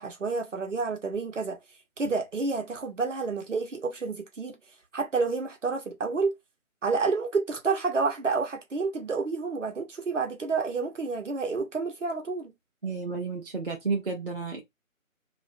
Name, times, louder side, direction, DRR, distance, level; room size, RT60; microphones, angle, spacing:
voice 1, 0.0-1.6 2.0-4.6 4.9-6.3 6.8-12.5, right 4 dB, 60° right, 0.9 m, -29 dB
voice 2, 12.8-14.6, right 4 dB, 45° right, 0.5 m, -31 dB
2.4 x 2.1 x 2.5 m
figure-of-eight pair, 150°, 42 cm